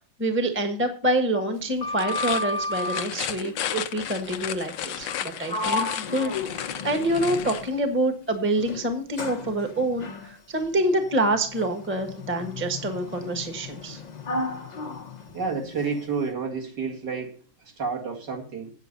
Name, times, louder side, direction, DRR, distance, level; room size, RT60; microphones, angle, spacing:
voice 1, 0.2-14.0, right 1 dB, 5° right, 6 dB, 1.2 m, -26 dB
Sliding door, 1.6-3.1 5.0-5.2 5.5-7.9 8.6-16.0, left 2 dB, 35° left, 0.7 m, -34 dB
sound 1, 1.9-7.7, left 10 dB, 75° left, 1.3 m, -33 dB
voice 2, 15.3-18.7, right 5 dB, 60° right, 0 dB, 2.6 m, -30 dB
8.5 x 8.1 x 5.3 m, 0.39 s
omnidirectional pair, 2.1 m